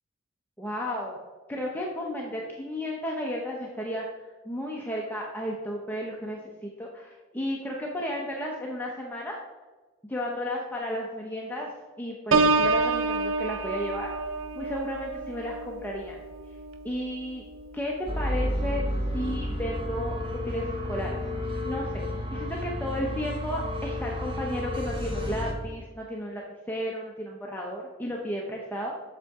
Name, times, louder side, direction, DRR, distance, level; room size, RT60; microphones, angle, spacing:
voice 1, 0.6-1.2 1.5-4.0 4.4-9.4 10.0-11.7 12.0-14.1 14.5-16.2 16.8-17.4 17.7-18.8 19.1-22.0 22.3-28.9, equal, 10° left, -2 dB, 0.7 m, -33 dB
Piano, 12.3-17.9 18.4-18.7, right 3 dB, 70° right, 0.6 m, -28 dB
sound 1, 18.1-25.5, left 1 dB, 25° right, 1.1 m, -31 dB
8.0 x 5.9 x 3.6 m, 1.3 s
head